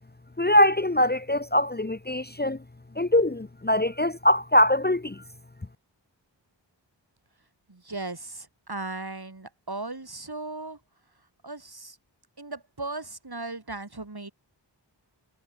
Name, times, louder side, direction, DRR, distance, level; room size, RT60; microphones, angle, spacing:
voice 1, 0.4-2.6 3.0-5.2, left 1 dB, 20° left, 0.9 m, -22 dB
voice 2, 7.7-10.8 11.4-12.0 12.4-14.3, right 2 dB, 55° right, 6.2 m, -37 dB
wide cardioid pair, 45°, 44 cm